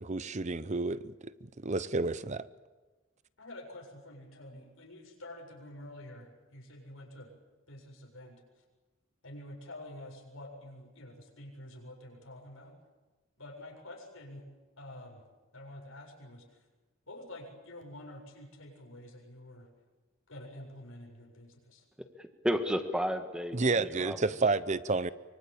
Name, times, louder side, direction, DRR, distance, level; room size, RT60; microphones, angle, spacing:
voice 1, 0.0-2.4 23.5-25.1, right 3 dB, 35° right, 15 dB, 0.8 m, -30 dB
voice 2, 3.4-7.3 7.7-8.4 9.2-12.7 13.4-14.4 14.8-15.2 15.5-16.4 17.1-19.7 20.3-21.8, left 1 dB, 80° left, 1 dB, 7.5 m, -48 dB
voice 3, 22.2-24.2, equal, 5° right, 6 dB, 1.6 m, -32 dB
24.5 x 24.5 x 8.7 m, 1.2 s
head